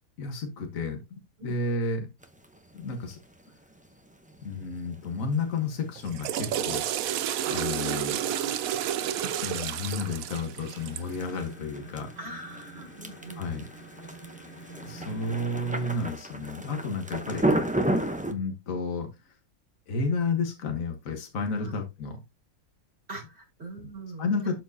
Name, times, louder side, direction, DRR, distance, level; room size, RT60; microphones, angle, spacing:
voice 1, 0.2-2.1 2.7-3.2 4.4-7.2 7.5-8.2 9.2-12.1 13.4-13.6 14.9-17.4 18.3-19.1 19.9-22.2 24.2-24.5, left 3 dB, 65° left, 4 dB, 1.7 m, -31 dB
sound 1, 2.2-18.3, right 1 dB, 10° right, 0.6 m, -35 dB
Water / Toilet flush, 6.0-11.2, right 10 dB, 75° right, 1.0 m, -30 dB
sound 2, 10.7-16.1, right 2 dB, 45° left, 2.6 m, -46 dB
voice 2, 12.2-13.6 15.0-15.2 21.6-21.8 23.1-24.5, right 2 dB, 45° right, 0 dB, 3.6 m, -42 dB
12.5 x 4.4 x 2.8 m, 0.24 s
omnidirectional pair, 1.5 m